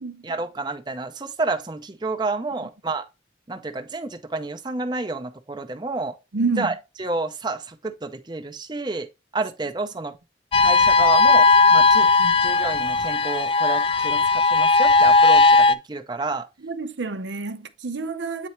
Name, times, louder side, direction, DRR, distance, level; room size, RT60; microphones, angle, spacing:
voice 1, 0.2-3.1 3.5-6.2 6.6-9.1 9.3-10.1 10.6-12.1 12.4-16.5, right 3 dB, 25° right, 0.6 m, -30 dB
voice 2, 6.3-6.7 12.2-12.4 16.6-18.5, right 4 dB, 90° right, 0.7 m, -28 dB
sound 1, 10.5-15.7, left 3 dB, 30° left, 0.3 m, -17 dB
8.3 x 4.3 x 3.0 m
head